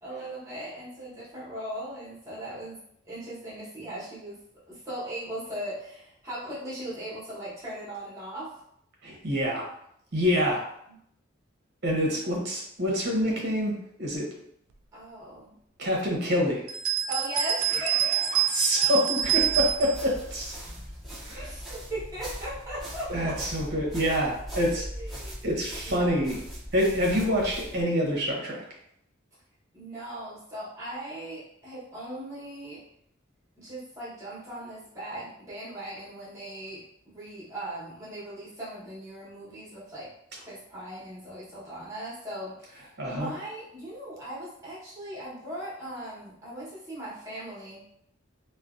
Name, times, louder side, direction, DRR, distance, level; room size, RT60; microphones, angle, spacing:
voice 1, 0.0-2.8 3.1-4.4 4.7-8.5 10.9-11.0 14.9-15.5 17.1-18.2 21.3-23.4 24.8-25.4 25.8-26.2 29.7-32.8 33.6-40.1 40.5-47.9, right 1 dB, 15° right, -8 dB, 0.9 m, -39 dB
voice 2, 9.0-9.6 10.1-10.6 11.8-14.3 15.8-16.6 18.0-20.5 21.2-21.5 23.1-24.8 25.4-26.4 26.7-28.6 43.0-43.3, equal, 50° right, -2 dB, 0.7 m, -26 dB
sound 1, 16.7-20.0, right 10 dB, 85° right, 0.3 m, -26 dB
sound 2, 19.2-27.8, equal, ahead, 0.4 m, -40 dB
2.5 x 2.1 x 2.4 m, 0.72 s
head